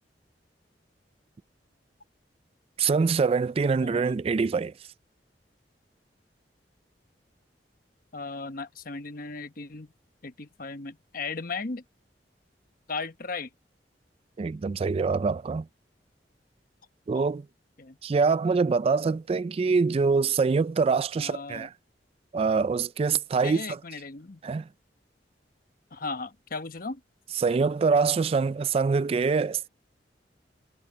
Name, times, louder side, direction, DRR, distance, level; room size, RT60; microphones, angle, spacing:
voice 1, 2.8-4.7 14.4-15.7 17.1-17.4 18.0-21.7 22.3-23.6 24.4-24.7 27.4-29.7, right 4 dB, 35° right, 0.3 m, -24 dB
voice 2, 3.8-4.1 8.1-9.9 10.2-11.8 12.9-13.5 17.1-17.2 17.8-18.0 21.2-21.7 23.4-24.4 25.9-27.0, left 4 dB, 55° left, 1.1 m, -36 dB
head